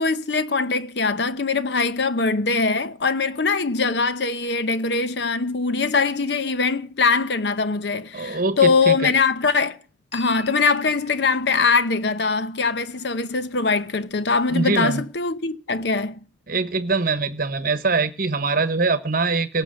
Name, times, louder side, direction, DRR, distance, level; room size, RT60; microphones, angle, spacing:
voice 1, 0.0-9.8 10.1-16.2, left 4 dB, 65° left, 0.8 m, -22 dB
sound 1, 3.0-5.9 10.1-13.7, left 5 dB, 35° left, 4.5 m, -47 dB
voice 2, 8.1-9.1 14.5-15.0 16.5-19.6, right 3 dB, 50° right, 1.1 m, -23 dB
18.5 x 7.3 x 7.7 m
head